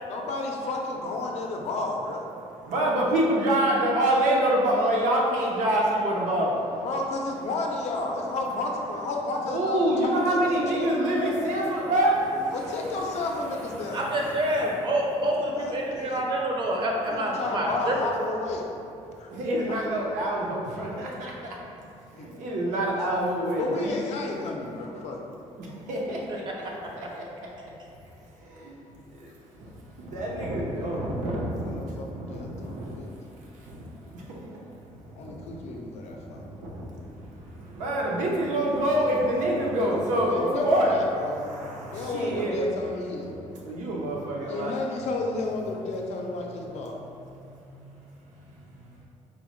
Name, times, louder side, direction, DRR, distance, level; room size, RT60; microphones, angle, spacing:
voice 1, 0.1-2.3 3.0-3.2 6.8-11.0 12.5-14.0 15.6-16.3 17.0-18.7 19.2-19.3 19.7-19.8 22.2-22.3 23.6-25.2 31.6-33.1 35.2-36.4 40.3-41.4 41.9-43.4 44.5-47.0, left 3 dB, 60° left, 1 dB, 0.4 m, -32 dB
voice 2, 2.6-6.9 9.4-13.0 13.2-13.3 13.8-14.6 19.3-21.6 22.1-23.9 25.6-26.4 27.0-27.2 28.4-28.7 29.6-29.7 30.0-33.0 33.5-34.4 34.9-35.6 36.2-40.9 41.2-42.5 43.6-44.8 47.4-47.8 48.4-48.7, right 1 dB, 90° right, -3 dB, 0.7 m, -27 dB
voice 3, 13.9-18.1, right 1 dB, 40° right, -1 dB, 0.5 m, -27 dB
4.1 x 2.1 x 3.0 m, 2.6 s
cardioid pair, 150°, 12 cm